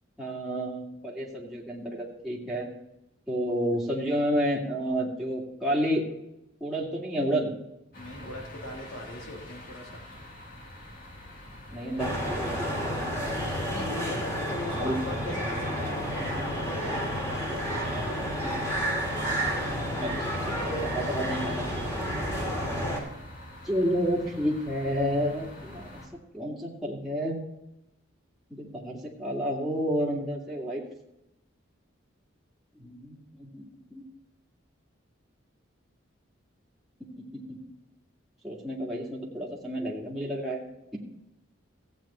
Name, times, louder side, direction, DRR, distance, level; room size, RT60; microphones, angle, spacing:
voice 1, 0.2-2.7 3.3-6.0 6.6-7.5 11.7-12.8 14.7-15.0 18.4-18.5 20.0-20.4 20.6-21.6 23.6-26.0 26.3-27.4 28.5-30.8 32.8-33.7 33.9-34.0 37.1-37.6 38.4-40.6, equal, ahead, -5 dB, 2.1 m, -30 dB
voice 2, 7.9-10.0 13.7-17.5 17.8-19.0 22.3-22.9, left 1 dB, 75° left, -1 dB, 3.5 m, -40 dB
sound 1, 7.9-26.1, left 1 dB, 45° left, 2.4 m, -46 dB
sound 2, 12.0-23.0, equal, 15° left, 2.7 m, -30 dB
15.0 x 8.7 x 4.3 m, 0.90 s
head